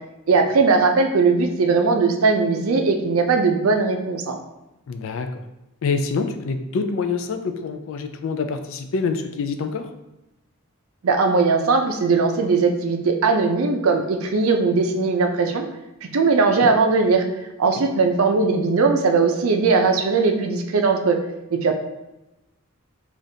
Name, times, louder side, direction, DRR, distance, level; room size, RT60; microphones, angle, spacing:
voice 1, 0.3-4.4 11.0-15.7 16.0-17.2 17.6-21.2 21.5-21.8, right 4 dB, 75° right, 5 dB, 0.5 m, -19 dB
voice 2, 4.9-5.4 5.8-9.9 16.6-16.7 17.6-17.7, left 4 dB, 65° left, 7 dB, 0.4 m, -26 dB
4.9 x 2.5 x 2.7 m, 0.97 s
head